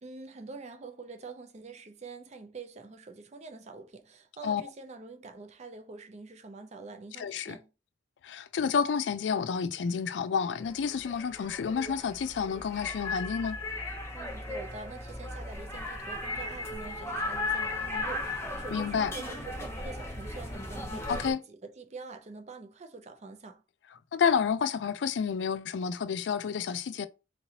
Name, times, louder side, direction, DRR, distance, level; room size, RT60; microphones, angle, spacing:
voice 1, 0.0-7.7 14.1-23.6, right 3 dB, 40° right, 0.5 m, -45 dB
voice 2, 7.2-7.6 8.2-13.6 18.7-19.1 21.1-21.4 24.1-27.1, left 6 dB, 80° left, 0.4 m, -29 dB
sound 1, 10.6-21.3, left 2 dB, 15° left, 0.8 m, -36 dB
3.7 x 3.0 x 2.8 m
head